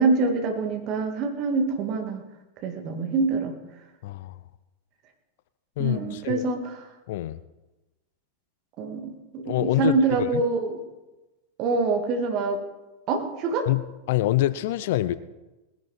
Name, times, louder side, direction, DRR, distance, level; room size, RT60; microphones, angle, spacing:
voice 1, 0.0-2.2 2.6-3.5 5.8-6.9 8.8-10.8 11.6-12.6 13.1-13.7, right 4 dB, 40° right, 4 dB, 2.1 m, -25 dB
voice 2, 4.0-4.3 5.8-6.5 7.1-7.4 9.4-10.0 13.7-15.2, left 15 dB, 50° left, 16 dB, 0.5 m, -25 dB
19.0 x 10.5 x 4.2 m, 1.1 s
figure-of-eight pair, 90°, 0 cm